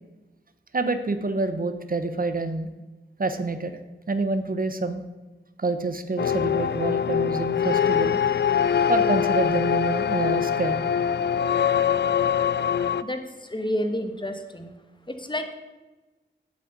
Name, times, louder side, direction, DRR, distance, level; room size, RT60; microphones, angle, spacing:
voice 1, 0.7-2.7 3.2-3.8 4.1-5.0 5.6-8.2 8.9-10.8, right 3 dB, 45° right, 9 dB, 0.9 m, -27 dB
sound 1, 6.2-13.0, left 8 dB, 60° left, 0.4 m, -23 dB
voice 2, 13.0-14.7 15.1-15.6, equal, 25° left, 7 dB, 1.4 m, -30 dB
8.6 x 7.6 x 8.0 m, 1.2 s
wide cardioid pair, 70°, 20 cm